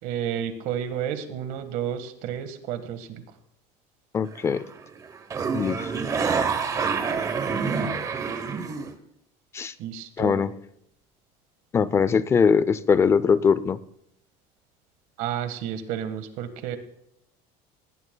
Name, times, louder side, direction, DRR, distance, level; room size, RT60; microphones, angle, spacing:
voice 1, 0.0-3.2 9.8-10.5 15.2-16.8, right 9 dB, 65° right, 9 dB, 1.5 m, -31 dB
voice 2, 4.1-4.7 5.5-5.9 9.5-9.7 10.2-10.5 11.7-13.8, left 6 dB, 20° left, 17 dB, 0.4 m, -21 dB
sound 1, 4.3-4.7 5.0-8.9, right 5 dB, 25° right, 0.9 m, -27 dB
19.0 x 16.0 x 2.2 m, 0.74 s
cardioid pair, 165°, 15 cm